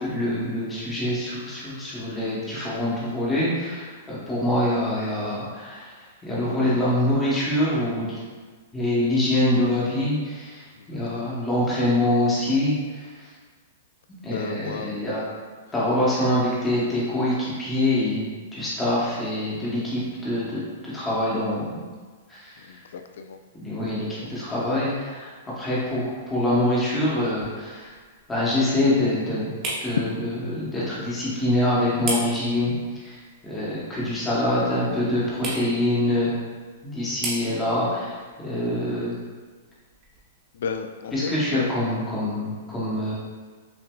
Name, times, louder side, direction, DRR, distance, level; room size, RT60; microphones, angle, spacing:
voice 1, 0.0-5.9 6.2-8.2 8.7-13.3 14.2-15.2 15.7-21.8 22.3-22.8 23.6-28.0 28.3-29.5 29.8-36.3 36.8-39.2 41.1-43.1, left 1 dB, 10° left, -8 dB, 0.8 m, -25 dB
voice 2, 10.8-11.3 14.2-14.9 22.6-23.4 23.7-23.8 24.1-24.3 40.5-41.7, left 6 dB, 65° left, 6 dB, 0.3 m, -34 dB
sound 1, 26.1-40.9, right 2 dB, 25° right, 0.8 m, -39 dB
5.8 x 2.5 x 2.2 m, 1.5 s
hypercardioid pair, 175°, 0 cm